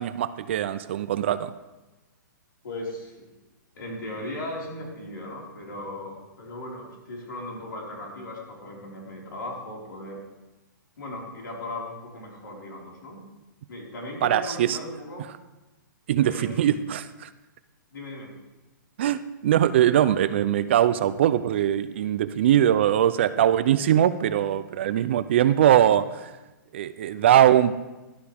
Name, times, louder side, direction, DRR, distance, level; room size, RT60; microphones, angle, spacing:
voice 1, 0.0-1.5 14.2-14.8 16.1-17.3 19.0-26.3 26.7-27.7, right 11 dB, 35° right, 14 dB, 0.4 m, -21 dB
voice 2, 2.6-3.3 3.7-10.2 11.0-13.2 13.7-15.3 16.2-16.8 17.9-18.3 27.2-27.3, left 1 dB, 85° left, -2 dB, 4.7 m, -37 dB
16.5 x 12.0 x 3.5 m, 1.1 s
hypercardioid pair, 175°, 11 cm